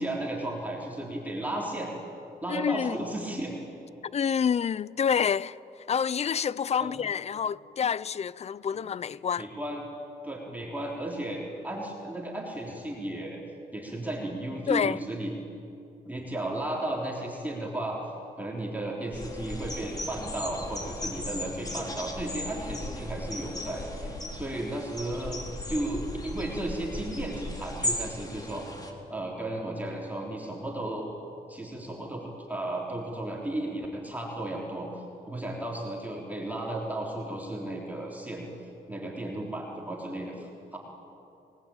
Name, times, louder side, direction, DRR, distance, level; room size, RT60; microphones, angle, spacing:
voice 1, 0.0-1.9 2.4-3.6 6.8-7.0 9.4-9.8 10.2-13.4 13.7-15.3 16.0-18.0 18.4-28.6 29.1-31.1 31.5-34.9 35.3-40.8, right 1 dB, 10° right, 3.8 m, -34 dB
voice 2, 2.5-3.0 4.0-5.6 5.9-9.5 14.7-15.0, left 7 dB, 40° left, 0.5 m, -28 dB
sound 1, 19.1-28.9, left 1 dB, 25° left, 3.8 m, -36 dB
28.5 x 19.5 x 8.9 m
cardioid pair, 100°, 16 cm